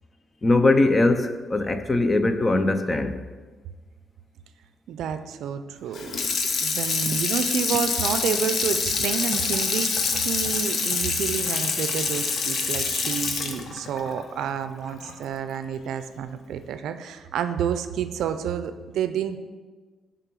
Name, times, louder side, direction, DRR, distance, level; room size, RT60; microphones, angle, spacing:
voice 1, 0.4-3.2, left 2 dB, 25° left, 0.6 m, -21 dB
voice 2, 4.9-6.3 6.6-19.4, right 8 dB, 80° right, 0.4 m, -29 dB
Water tap faucet / Sink (filling or washing), 5.9-15.1 15.5-15.6, left 4 dB, 60° left, 0.8 m, -26 dB
6.6 x 3.8 x 6.2 m
cardioid pair, 90°, 0 cm